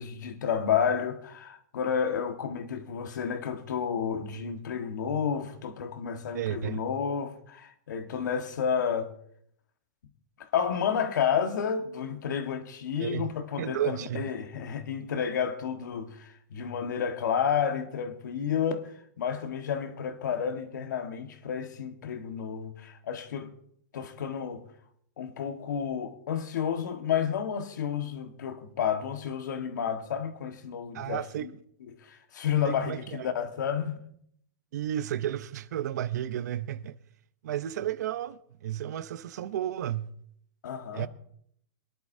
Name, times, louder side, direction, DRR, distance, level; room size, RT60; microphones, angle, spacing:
voice 1, 0.0-9.1 10.4-23.5 23.9-24.6 25.2-31.5 31.9-34.0 40.6-41.1, left 7 dB, 85° left, 1.5 m, -31 dB
voice 2, 6.3-6.8 13.0-13.3 13.6-14.3 30.9-31.5 32.7-33.3 34.7-37.0 37.4-40.1 40.9-41.1, right 11 dB, 70° right, 0.8 m, -32 dB
23.5 x 10.5 x 2.7 m
supercardioid pair, 160°, 10 cm